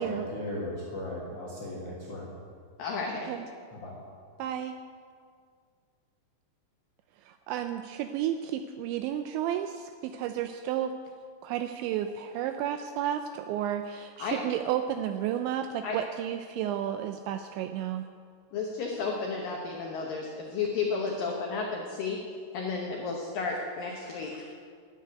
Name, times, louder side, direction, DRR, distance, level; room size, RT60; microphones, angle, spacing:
voice 1, 0.0-2.4 3.7-4.0, left 1 dB, 70° left, -5 dB, 1.4 m, -37 dB
voice 2, 2.8-3.3 14.2-14.4 15.8-16.0 18.5-22.2 22.5-24.5, left 4 dB, 85° left, 0 dB, 1.9 m, -32 dB
voice 3, 4.4-4.8 7.2-10.9 11.4-18.1, right 10 dB, 85° right, 8 dB, 2.6 m, -32 dB
13.0 x 7.5 x 9.5 m, 2.1 s
omnidirectional pair, 5.7 m